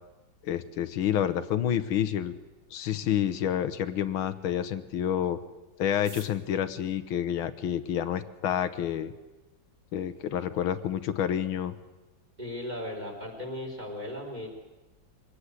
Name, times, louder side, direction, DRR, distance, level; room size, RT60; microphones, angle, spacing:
voice 1, 0.4-2.3 2.7-5.4 5.8-9.1 9.9-11.7, left 10 dB, 85° left, 11 dB, 1.8 m, -29 dB
sound 1, 5.9-8.1 8.9-9.0 9.2-9.3 9.6-10.1 10.4-10.5 10.7-11.1 11.4-11.6 12.0-12.3, right 5 dB, 60° right, 2.5 m, -52 dB
voice 2, 12.4-14.5, left 1 dB, 20° right, 1 dB, 4.4 m, -36 dB
24.0 x 18.5 x 8.3 m, 1.1 s
omnidirectional pair, 2.2 m